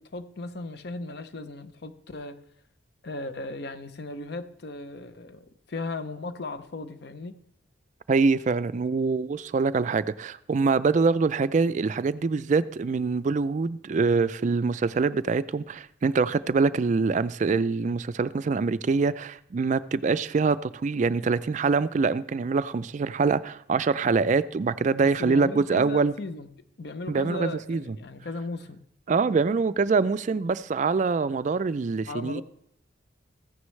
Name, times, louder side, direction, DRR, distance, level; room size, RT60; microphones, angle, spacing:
voice 1, 0.0-2.4 3.0-7.4 25.0-26.5 26.8-28.8 32.1-32.4, left 2 dB, 55° left, 0.6 m, -36 dB
voice 2, 8.1-26.1 27.1-28.0 29.1-32.4, right 4 dB, 40° right, 0.3 m, -24 dB
14.5 x 9.6 x 3.2 m
head